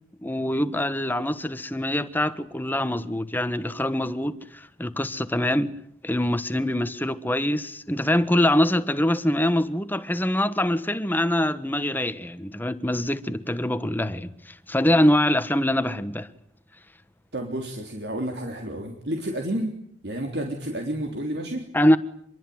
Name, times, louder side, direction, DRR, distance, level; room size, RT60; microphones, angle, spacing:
voice 1, 0.2-5.7 6.0-16.3 21.7-22.0, left 1 dB, 10° left, 1.4 m, -24 dB
voice 2, 17.3-19.7 20.0-21.6, right 1 dB, 65° right, 3.6 m, -30 dB
27.0 x 22.0 x 9.5 m
head